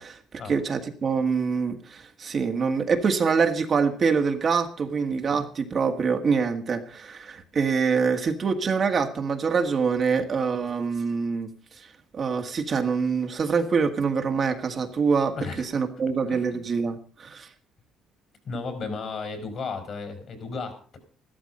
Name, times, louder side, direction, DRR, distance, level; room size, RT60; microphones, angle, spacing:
voice 1, 0.0-11.5 11.8-11.9 12.1-17.5, right 5 dB, 40° right, 5 dB, 1.6 m, -25 dB
voice 2, 15.3-15.8 16.3-16.6 18.4-21.0, left 4 dB, 45° left, 7 dB, 4.6 m, -34 dB
14.0 x 12.5 x 5.3 m, 0.42 s
cardioid pair, 125°, 0 cm